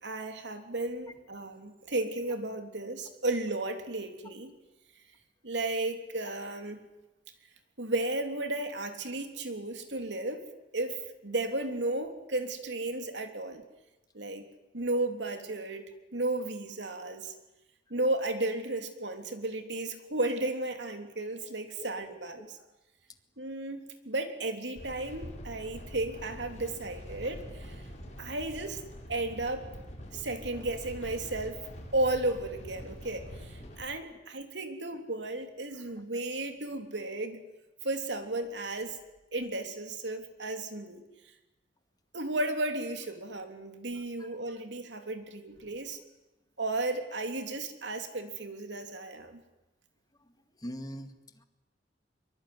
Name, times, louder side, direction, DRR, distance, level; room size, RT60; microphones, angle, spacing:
voice 1, 0.0-4.5 5.4-6.8 7.8-10.4 10.7-13.6 14.1-14.4 14.7-15.8 16.1-17.3 17.9-22.6 23.4-27.8 28.2-28.8 29.1-29.7 30.1-31.6 31.9-37.5 37.8-39.0 39.3-41.0 42.1-46.0 46.6-49.4, right 2 dB, 70° right, 6 dB, 3.4 m, -34 dB
sound 1, 24.8-33.8, equal, 40° left, 7.9 m, -45 dB
voice 2, 50.6-51.1, equal, 20° left, 7 dB, 2.2 m, -42 dB
24.0 x 23.5 x 9.8 m, 1.0 s
head